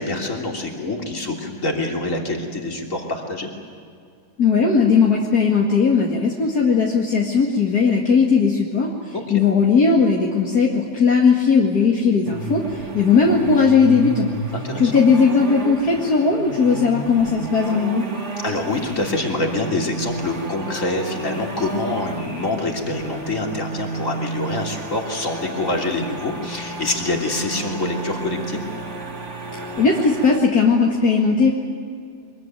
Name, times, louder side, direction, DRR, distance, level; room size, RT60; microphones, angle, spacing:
voice 1, 0.0-3.5 9.1-9.2 14.5-14.9 18.4-28.6, left 2 dB, 50° left, 1 dB, 3.5 m, -26 dB
voice 2, 4.4-14.3 14.8-18.1 29.8-31.5, left 5 dB, 65° left, -2 dB, 2.6 m, -17 dB
sound 1, 12.2-30.4, right 3 dB, 45° right, 2.6 m, -32 dB
24.5 x 22.0 x 9.3 m, 2.3 s
omnidirectional pair, 1.8 m